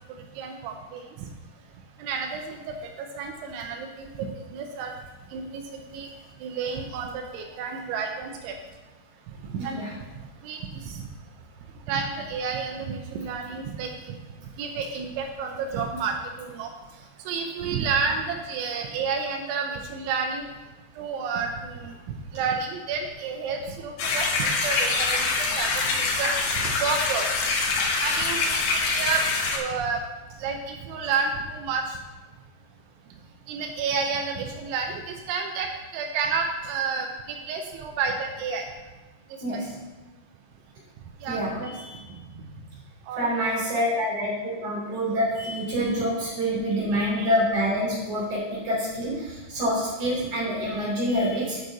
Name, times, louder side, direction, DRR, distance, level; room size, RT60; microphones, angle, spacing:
voice 1, 0.4-1.3 2.0-5.0 5.3-6.1 6.4-8.6 9.4-10.0 10.4-11.1 11.9-14.2 14.6-16.7 17.3-20.5 21.0-21.9 22.3-27.3 28.0-29.2 29.5-30.0 30.4-32.0 33.5-38.7 39.3-39.6 41.2-41.7 43.1-43.3 46.9-47.3, right 5 dB, 85° right, 3 dB, 3.2 m, -30 dB
voice 2, 9.6-9.9 39.4-39.8 41.3-41.9 43.2-51.6, equal, 35° right, -6 dB, 3.7 m, -27 dB
sound 1, 24.0-29.6, left 4 dB, 90° left, 1.7 m, -25 dB
10.5 x 6.4 x 4.0 m, 1.2 s
omnidirectional pair, 5.4 m